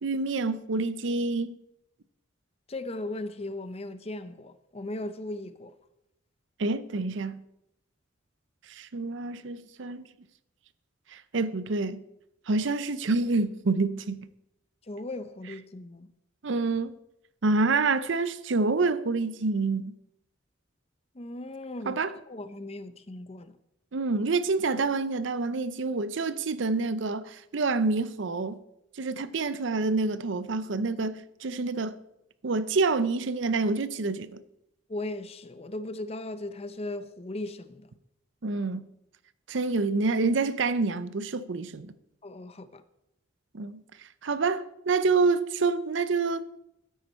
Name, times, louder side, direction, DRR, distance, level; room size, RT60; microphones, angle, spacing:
voice 1, 0.0-1.6 6.6-7.4 8.7-10.0 11.1-12.0 12.5-14.3 16.4-16.9 17.4-20.0 21.9-22.1 23.9-28.6 29.0-32.0 32.4-34.4 38.4-38.8 39.5-41.9 43.5-43.8 44.2-46.4, right 3 dB, 65° right, 0.6 m, -27 dB
voice 2, 2.7-5.7 14.9-16.1 21.1-22.0 22.3-23.5 34.9-37.9 42.2-42.8, left 2 dB, 30° left, 0.6 m, -37 dB
12.5 x 9.6 x 4.3 m
head